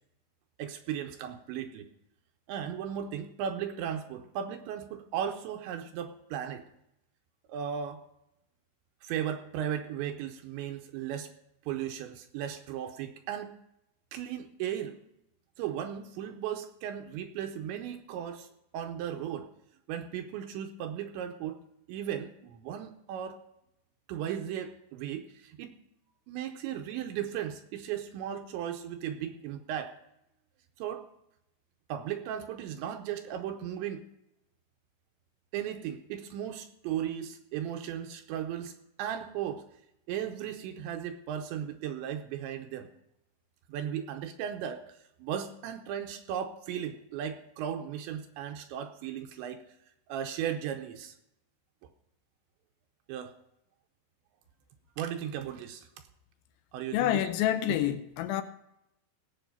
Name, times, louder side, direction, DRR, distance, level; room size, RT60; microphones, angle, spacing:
voice 1, 0.6-1.9 2.5-6.6 7.5-8.0 9.0-11.3 11.7-13.5 14.1-15.0 15.6-18.5 18.7-19.5 19.9-21.6 21.9-23.4 24.1-25.7 26.3-30.0 30.8-31.1 31.9-34.1 35.5-38.7 39.0-39.6 40.1-42.9 43.7-49.6 50.1-51.2 53.1-53.4 55.0-55.9 56.7-57.2, right 9 dB, 80° right, 2.8 m, -36 dB
voice 2, 56.9-58.4, left 12 dB, 80° left, 2.8 m, -28 dB
17.5 x 7.6 x 5.5 m
omnidirectional pair, 5.7 m